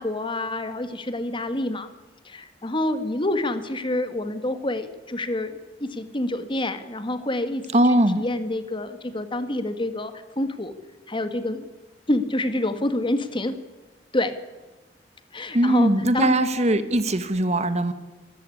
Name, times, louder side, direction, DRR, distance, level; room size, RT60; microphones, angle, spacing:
voice 1, 0.0-1.9 2.3-7.7 8.2-10.7 11.1-11.7 12.1-13.6 14.1-14.3 15.3-16.3, left 1 dB, 30° left, 10 dB, 1.8 m, -27 dB
voice 2, 7.7-8.2 15.5-17.9, right 1 dB, 40° right, 11 dB, 1.5 m, -20 dB
25.0 x 13.5 x 9.9 m, 1.2 s
head